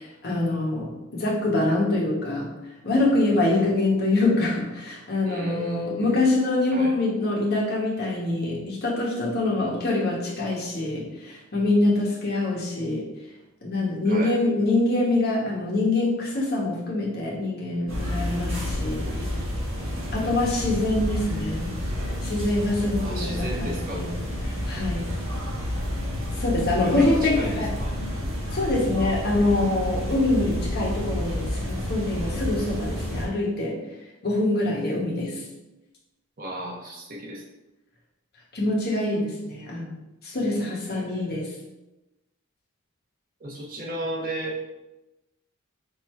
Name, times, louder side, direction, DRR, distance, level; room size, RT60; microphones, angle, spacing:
voice 1, 0.2-2.5 2.8-13.1 13.6-19.0 20.1-21.8 22.2-25.1 26.4-27.7 28.5-33.8 34.2-35.4 38.5-41.5, left 2 dB, 50° left, -4 dB, 1.1 m, -25 dB
voice 2, 5.2-6.3 6.7-6.9 14.0-14.4 20.1-20.3 23.0-24.0 26.8-27.9 36.4-37.4 40.9-41.3 43.4-44.6, right 1 dB, 45° right, -2 dB, 1.0 m, -34 dB
sound 1, 17.9-33.3, left 1 dB, 80° right, 1.4 m, -30 dB
4.7 x 2.7 x 4.2 m, 1.0 s
head